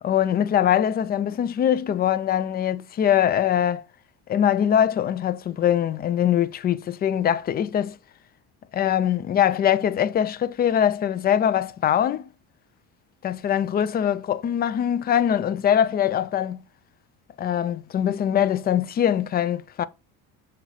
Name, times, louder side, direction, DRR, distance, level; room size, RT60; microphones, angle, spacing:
voice 1, 0.0-3.8 4.3-7.9 8.7-12.3 13.2-16.6 17.4-19.8, left 10 dB, 25° left, 0.4 m, -22 dB
6.2 x 4.4 x 4.0 m
cardioid pair, 145°, 36 cm